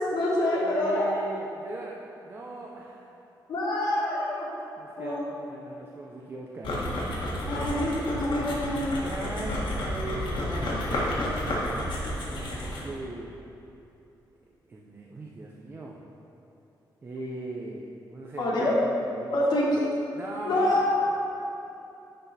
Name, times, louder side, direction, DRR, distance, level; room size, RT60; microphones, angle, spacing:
voice 1, 0.0-1.1 3.5-4.4 5.0-5.2 7.5-9.0 18.4-18.7 19.3-19.8 20.4-21.1, left 1 dB, 60° left, -5 dB, 1.5 m, -26 dB
voice 2, 0.6-3.1 4.8-6.8 9.0-13.3 14.6-16.0 17.0-18.7 19.0-19.6 20.1-20.9, right 2 dB, 25° right, -2 dB, 0.5 m, -39 dB
sound 1, 6.6-13.0, left 1 dB, 80° left, 1.5 m, -31 dB
10.0 x 4.0 x 4.1 m, 2.9 s
wide cardioid pair, 175°, 8 cm